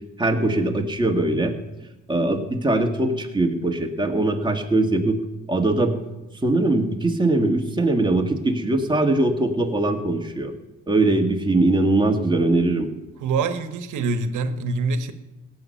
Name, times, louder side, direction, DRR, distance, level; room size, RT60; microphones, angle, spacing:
voice 1, 0.2-1.5 2.1-5.2 5.5-5.9 6.4-10.5 10.9-12.9, right 2 dB, 15° right, 2 dB, 1.8 m, -21 dB
voice 2, 13.2-15.1, right 4 dB, 80° right, 10 dB, 1.1 m, -25 dB
17.0 x 8.0 x 5.6 m, 1.0 s
cardioid pair, 90°, 30 cm